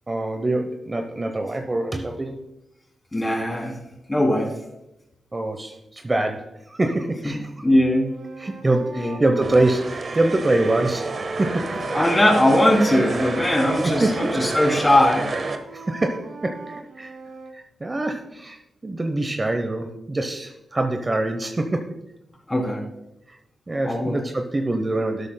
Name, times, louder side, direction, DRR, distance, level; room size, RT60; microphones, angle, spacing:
voice 1, 0.1-2.4 5.3-7.6 8.4-11.8 13.8-14.3 14.6-14.8 15.7-17.1 17.5-21.9 23.3-23.4 23.7-25.3, right 2 dB, 25° right, 5 dB, 0.8 m, -25 dB
voice 2, 3.1-3.7 4.1-4.5 7.2-7.4 7.6-8.1 9.0-9.2 11.9-15.3 22.5-22.8 23.8-24.2, left 1 dB, 15° left, 1 dB, 3.0 m, -20 dB
Wind instrument woodwind instrument, 8.0-12.4 12.7-17.6, right 2 dB, 75° right, 1.4 m, -37 dB
sound 1, 9.4-15.6, right 3 dB, 50° right, 1.1 m, -29 dB
12.5 x 12.0 x 2.2 m, 0.87 s
cardioid pair, 90°, 0 cm